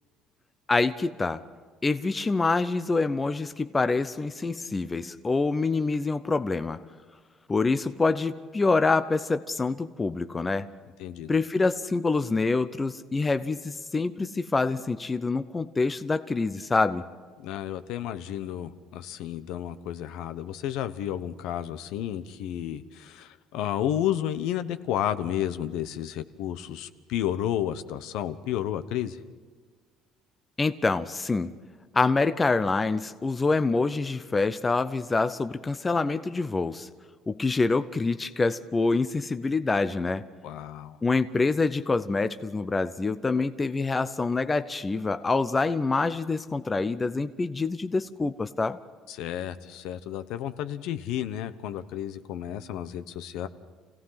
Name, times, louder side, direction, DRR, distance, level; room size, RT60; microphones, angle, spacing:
voice 1, 0.7-1.4 1.8-6.8 7.5-10.7 11.3-17.0 30.6-31.5 31.9-36.9 37.3-40.3 41.0-48.8, left 3 dB, 15° left, 10 dB, 0.5 m, -26 dB
voice 2, 11.0-11.3 17.4-29.2 40.4-41.0 49.1-53.5, left 11 dB, 70° left, 11 dB, 1.0 m, -32 dB
28.5 x 17.0 x 5.8 m, 1.5 s
cardioid pair, 170°, 0 cm